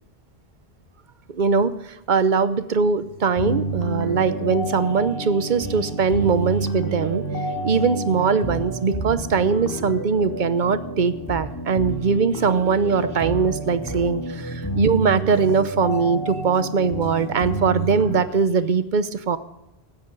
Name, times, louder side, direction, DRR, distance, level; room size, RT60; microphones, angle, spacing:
voice 1, 1.3-1.8 2.1-7.2 7.6-19.4, right 5 dB, 50° right, 14 dB, 0.9 m, -21 dB
sound 1, 3.4-18.2, right 2 dB, 20° left, 2.6 m, -29 dB
16.5 x 13.0 x 3.9 m, 0.94 s
omnidirectional pair, 1.1 m